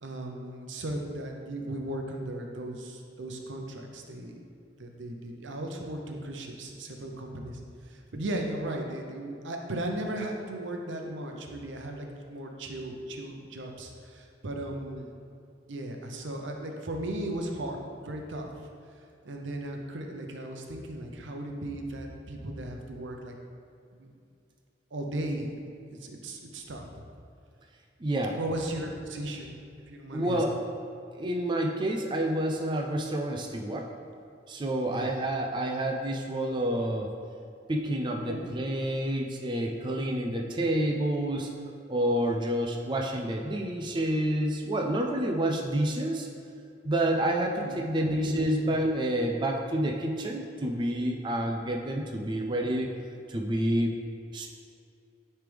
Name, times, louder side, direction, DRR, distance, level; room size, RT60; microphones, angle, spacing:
voice 1, 0.0-4.4 4.8-7.6 8.1-15.2 15.7-17.8 18.0-18.5 19.2-23.4 23.9-24.1 24.9-25.5 25.9-27.0 28.3-29.5 29.9-30.4 34.9-35.1 38.3-38.5 47.6-48.7, right 1 dB, 85° right, 2 dB, 0.7 m, -36 dB
voice 2, 28.0-28.4 30.1-30.6 31.2-33.9 34.5-37.1 37.7-41.5 41.9-46.3 46.8-52.9 53.3-53.9 54.3-54.5, right 1 dB, 25° right, 1 dB, 0.4 m, -28 dB
9.3 x 3.3 x 3.4 m, 2.5 s
head